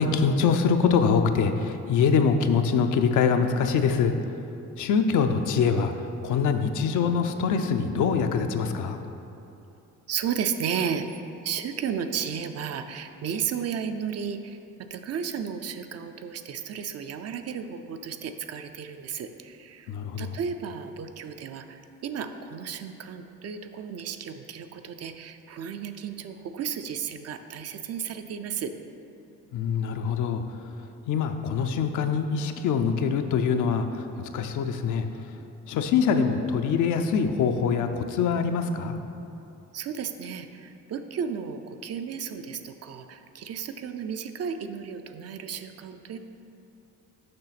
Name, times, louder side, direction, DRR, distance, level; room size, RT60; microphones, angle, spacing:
voice 1, 0.0-4.1 4.8-5.9 6.2-9.0 19.9-20.3 29.5-30.4 31.1-35.1 35.7-39.0, left 6 dB, 80° left, 7 dB, 0.6 m, -24 dB
voice 2, 10.1-11.1 11.4-19.9 20.2-28.7 39.7-46.2, right 7 dB, 55° right, 8 dB, 0.5 m, -33 dB
6.6 x 5.7 x 4.1 m, 2.8 s
cardioid pair, 90°, 30 cm